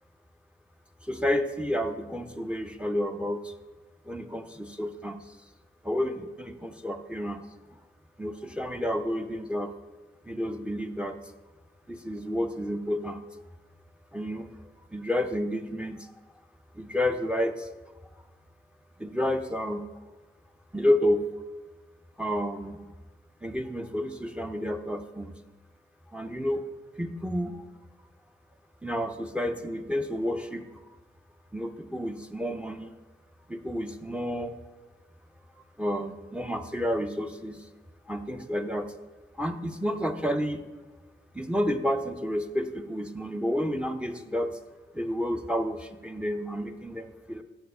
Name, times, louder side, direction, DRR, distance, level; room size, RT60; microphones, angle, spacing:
voice 1, 1.0-3.5 4.0-5.4 5.8-7.5 8.2-9.7 10.2-11.2 11.9-13.4 14.1-16.1 16.7-17.7 19.0-19.8 20.7-21.3 22.2-22.8 23.4-25.4 26.1-26.6 27.0-27.6 28.8-30.8 31.5-32.9 33.5-34.5 35.8-37.7 38.1-38.9 39.3-40.7 41.3-44.5 44.9-47.4, equal, 5° right, 7 dB, 0.6 m, -30 dB
6.7 x 4.5 x 6.6 m, 1.3 s
cardioid pair, 50°, 20 cm